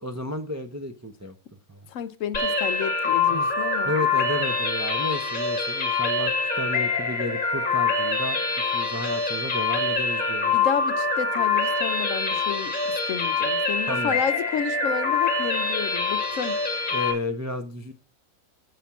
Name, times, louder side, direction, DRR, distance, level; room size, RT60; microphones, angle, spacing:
voice 1, 0.0-1.9 3.3-3.5 3.8-10.6 13.9-14.2 16.9-17.9, left 1 dB, 25° right, 0.3 m, -32 dB
voice 2, 1.9-3.9 10.5-12.7 13.1-16.6, left 7 dB, 65° left, 1.0 m, -31 dB
sound 1, 2.3-17.1, left 4 dB, 35° left, 1.8 m, -25 dB
7.5 x 5.0 x 6.9 m
omnidirectional pair, 1.5 m